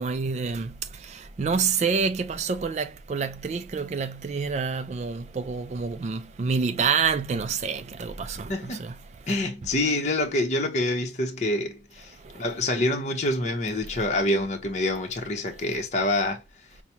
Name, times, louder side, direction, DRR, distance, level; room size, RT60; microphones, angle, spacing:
voice 1, 0.0-9.0 12.2-12.4, right 5 dB, 40° right, 0.3 m, -28 dB
voice 2, 8.5-8.9 9.3-16.4, left 1 dB, 40° left, 0.8 m, -26 dB
5.6 x 2.1 x 2.8 m
head